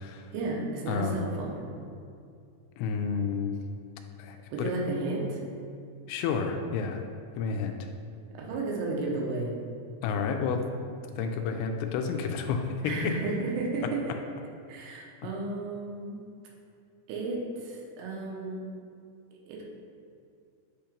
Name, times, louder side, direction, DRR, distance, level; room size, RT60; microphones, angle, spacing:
voice 1, 0.3-1.6 4.5-5.4 8.3-9.6 12.8-14.0 14.7-16.2 17.1-18.6 19.5-19.7, right 3 dB, 90° right, -2 dB, 3.1 m, -33 dB
voice 2, 0.9-1.2 2.8-3.6 4.2-4.7 6.1-7.0 7.4-7.7 10.0-10.7 11.2-13.1 13.8-13.9, left 5 dB, 85° left, 5 dB, 2.6 m, -30 dB
8.6 x 2.9 x 5.0 m, 2.4 s
omnidirectional pair, 4.6 m